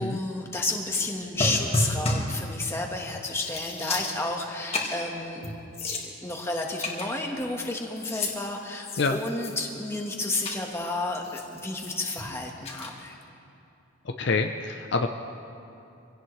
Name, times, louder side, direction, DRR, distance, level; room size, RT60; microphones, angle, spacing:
voice 1, 0.0-5.5 5.9-13.2, left 2 dB, 10° left, 0 dB, 1.4 m, -31 dB
sound 1, 1.4-2.4 2.9-3.0 3.3-4.4 4.7-5.0 5.4-5.5 5.7-6.4 6.8-7.7 8.0-8.3 8.8-9.7 10.4-10.6 11.1-12.2 12.6-12.9, left 2 dB, 30° left, 1.8 m, -31 dB
voice 2, 14.2-15.1, left 3 dB, 55° left, 5 dB, 0.6 m, -26 dB
25.5 x 17.0 x 3.2 m, 2.7 s
head